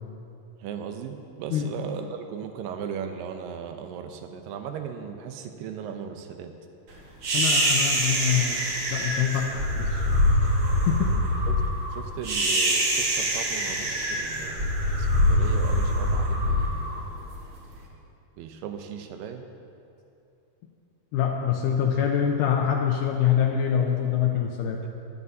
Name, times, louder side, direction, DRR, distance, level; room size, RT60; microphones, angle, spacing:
voice 1, 0.6-6.5 9.2-9.4 10.1-10.2 11.5-11.6 11.9-17.0 18.4-19.5 24.8-24.9, right 7 dB, 85° right, 6 dB, 2.4 m, -37 dB
sound 1, 7.2-17.6, equal, 55° right, 1.8 m, -24 dB
voice 2, 7.3-8.6 8.9-9.4 9.8-10.0 10.9-11.1 21.1-24.8, left 9 dB, 80° left, 0 dB, 2.0 m, -24 dB
14.0 x 11.0 x 2.7 m, 2.6 s
omnidirectional pair, 4.0 m